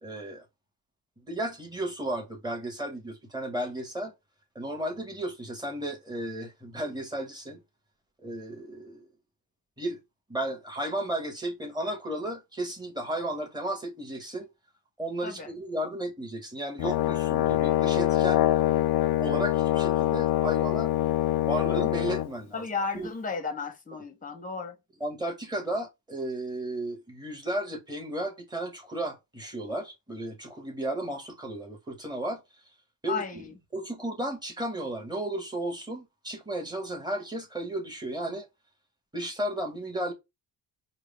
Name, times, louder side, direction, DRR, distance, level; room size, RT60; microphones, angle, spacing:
voice 1, 0.0-0.5 1.3-4.1 4.6-7.6 8.2-9.1 9.8-10.0 10.3-14.5 15.0-18.4 19.2-20.9 21.5-22.6 22.9-23.1 25.0-32.4 33.0-33.4 33.7-38.5 39.1-40.1, right 1 dB, 10° right, 1.8 m, -34 dB
Brass instrument, 16.8-22.3, left 13 dB, 65° left, 0.6 m, -24 dB
voice 2, 22.5-24.8 33.1-33.5, left 5 dB, 20° left, 1.1 m, -34 dB
4.8 x 2.4 x 3.5 m
cardioid pair, 140°, 43 cm